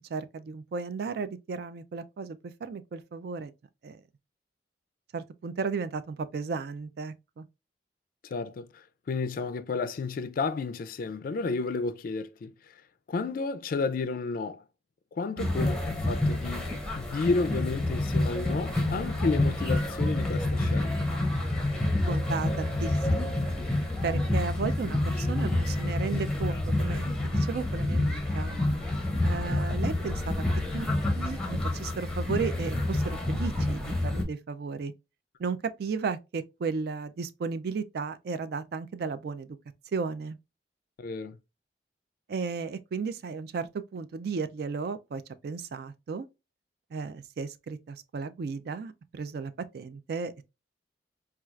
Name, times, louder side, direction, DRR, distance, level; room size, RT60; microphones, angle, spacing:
voice 1, 0.1-3.5 3.8-4.0 5.1-7.5 15.4-15.7 21.8-23.3 24.0-28.6 29.2-30.4 30.7-30.9 31.2-34.9 35.4-39.5 39.9-40.4 42.3-46.3 46.9-50.4, right 5 dB, 60° right, 0.3 m, -34 dB
voice 2, 8.2-12.8 13.1-14.6 15.1-15.8 16.0-21.1 41.0-41.4, left 4 dB, 50° left, 0.3 m, -32 dB
sound 1, 15.4-34.2, left 1 dB, 5° left, 0.7 m, -28 dB
4.3 x 2.3 x 2.3 m
head